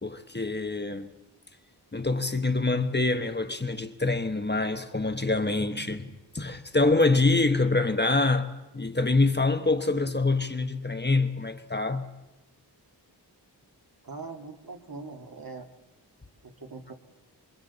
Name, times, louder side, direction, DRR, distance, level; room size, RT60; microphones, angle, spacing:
voice 1, 0.0-1.1 1.9-8.5 8.7-12.1, left 3 dB, 25° left, 1.1 m, -25 dB
voice 2, 14.0-15.7 16.4-16.9, right 3 dB, 55° right, 2.0 m, -41 dB
27.5 x 24.5 x 4.1 m
wide cardioid pair, 75°, 40 cm